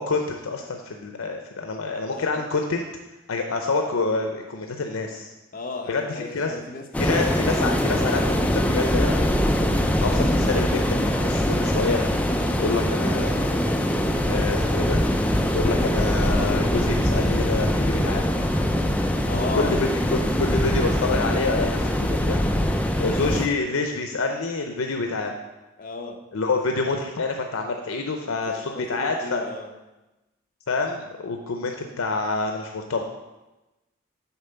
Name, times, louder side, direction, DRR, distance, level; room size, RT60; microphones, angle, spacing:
voice 1, 0.0-2.9 3.3-5.3 5.9-6.6 7.0-9.4 10.0-12.0 12.6-13.7 14.2-15.0 15.5-18.2 19.5-22.4 23.0-25.3 26.3-29.5 30.7-33.0, left 3 dB, 85° left, 4 dB, 0.6 m, -27 dB
voice 2, 5.5-7.7 9.6-10.0 19.0-20.2 20.5-20.6 22.9-23.6 25.8-26.2 28.3-29.7, left 3 dB, 40° left, 3 dB, 0.8 m, -36 dB
sound 1, 6.9-23.5, equal, 5° left, 0.3 m, -23 dB
6.9 x 4.5 x 6.7 m, 1.1 s
head